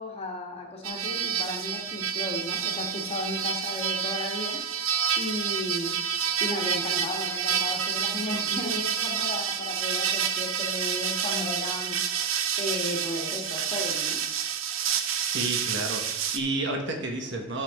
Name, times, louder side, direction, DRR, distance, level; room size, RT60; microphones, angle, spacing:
voice 1, 0.0-4.9 5.2-6.0 6.4-12.0 12.6-14.2, left 1 dB, 30° left, 0 dB, 1.4 m, -34 dB
sound 1, 0.8-16.4, right 8 dB, 80° right, 0.8 m, -29 dB
voice 2, 15.3-17.6, right 2 dB, 60° right, 2 dB, 1.4 m, -31 dB
11.0 x 7.5 x 3.6 m, 0.96 s
head